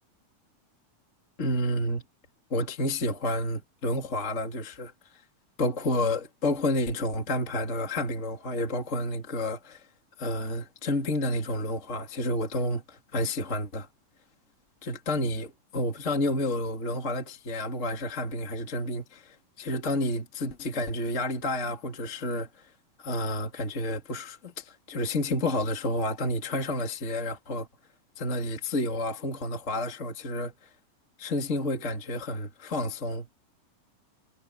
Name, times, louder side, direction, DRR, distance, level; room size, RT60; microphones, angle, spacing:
voice 1, 1.4-2.0 2.5-4.9 5.6-9.8 10.2-13.9 14.8-22.5 23.0-27.7 28.2-30.5 31.2-33.3, left 1 dB, 25° left, 2.8 m, -30 dB
omnidirectional pair, 3.6 m